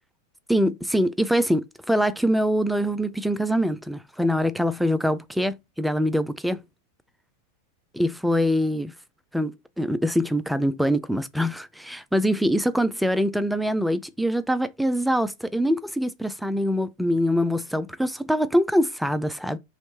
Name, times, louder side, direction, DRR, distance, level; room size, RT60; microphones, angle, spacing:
voice 1, 0.5-6.6 7.9-8.9 9.3-19.6, equal, ahead, 0.3 m, -24 dB
3.1 x 3.1 x 3.1 m
figure-of-eight pair, 90°, 0 cm